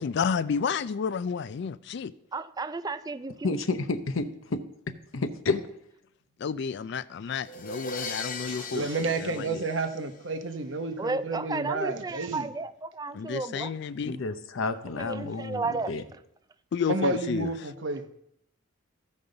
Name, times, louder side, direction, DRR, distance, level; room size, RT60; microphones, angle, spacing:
voice 1, 0.0-2.1 6.4-9.6 13.1-14.2 16.7-17.5, left 6 dB, 60° left, 0.4 m, -31 dB
voice 2, 2.3-3.6 11.0-13.7 15.0-15.9, right 3 dB, 20° right, 0.4 m, -33 dB
voice 3, 3.4-4.6 5.1-5.7 13.2-13.3 14.0-16.0, left 3 dB, 85° left, 0.7 m, -30 dB
sound 1, 7.5-10.4, left 3 dB, 45° left, 0.9 m, -38 dB
voice 4, 8.5-12.5 16.9-18.1, right 3 dB, 65° right, 0.9 m, -31 dB
14.5 x 5.3 x 3.9 m
head